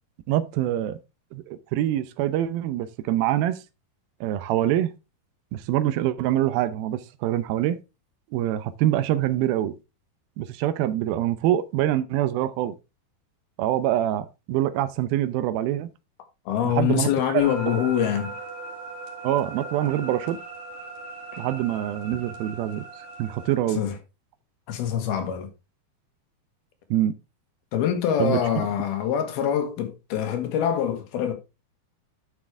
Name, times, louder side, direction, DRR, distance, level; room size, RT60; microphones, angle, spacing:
voice 1, 0.3-1.0 1.3-3.6 4.2-4.9 5.5-7.8 8.3-9.8 10.4-12.7 13.6-15.9 16.6-17.5 19.2-20.4 21.4-23.8 26.9-27.1 28.2-28.7, right 12 dB, 80° right, 2.5 m, -25 dB
voice 2, 16.5-18.4 23.8-24.0 24.7-25.5 27.7-31.3, left 9 dB, 85° left, 3.4 m, -25 dB
sound 1, 17.4-23.5, right 3 dB, 50° right, 3.6 m, -38 dB
11.5 x 6.1 x 3.3 m
omnidirectional pair, 4.4 m